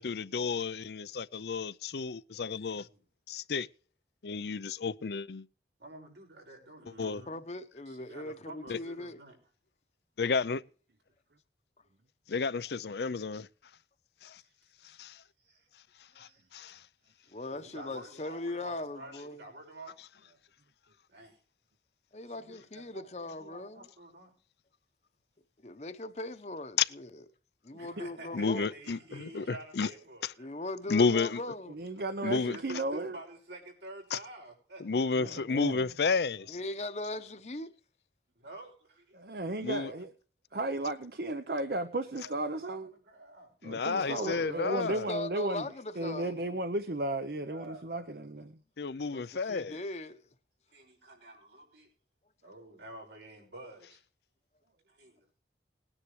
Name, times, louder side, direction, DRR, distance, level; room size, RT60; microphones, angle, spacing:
voice 1, 0.0-2.9 3.3-3.7 4.2-5.5 7.0-7.2 8.7-8.8 10.2-10.6 12.3-13.5 14.2-14.4 15.0-15.2 16.2-16.8 26.8-26.9 28.3-29.9 30.9-31.4 32.2-32.6 34.1-34.2 34.8-36.6 39.6-39.9 43.6-45.1 48.8-49.8, left 4 dB, 70° left, 0.5 m, -31 dB
voice 2, 2.6-3.0 5.8-7.4 7.9-9.4 14.8-15.0 15.4-15.7 16.1-16.5 17.5-20.4 21.1-21.4 22.3-24.3 27.8-30.5 32.2-34.8 35.1-35.2 36.3-36.6 38.4-39.2 39.8-40.0 42.2-43.5 44.0-44.9 45.7-46.0 46.6-46.7 47.1-48.3 50.7-51.9 52.4-54.0 54.9-55.3, right 2 dB, 80° right, 5.7 m, -49 dB
voice 3, 6.8-9.2 17.3-19.4 22.1-23.9 25.6-27.2 27.6-28.7 30.4-31.7 36.5-37.7 43.9-46.4 49.1-50.2, left 2 dB, 40° left, 0.9 m, -40 dB
voice 4, 31.7-33.2 35.2-35.8 39.1-40.1 40.5-42.9 43.6-45.7 46.0-48.6, right 2 dB, 60° right, 0.8 m, -34 dB
20.0 x 9.9 x 3.2 m
head